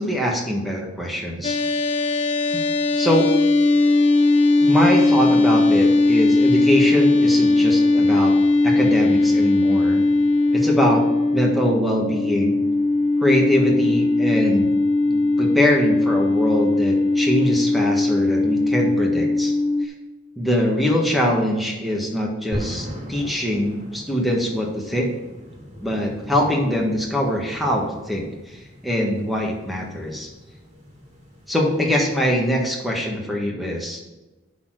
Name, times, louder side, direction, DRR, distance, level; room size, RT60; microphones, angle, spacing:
voice 1, 0.0-1.6 2.9-3.3 4.6-8.3 8.6-10.1 10.5-11.0 11.3-12.6 13.2-14.7 15.1-19.5 19.8-19.9 20.4-25.1 25.8-30.3 31.5-34.0, equal, ahead, -1 dB, 1.4 m, -23 dB
sound 1, 1.4-19.9, left 2 dB, 30° left, 0.8 m, -19 dB
sound 2, 22.5-32.7, equal, 35° right, 2.5 m, -39 dB
11.0 x 4.2 x 6.3 m, 1.1 s
head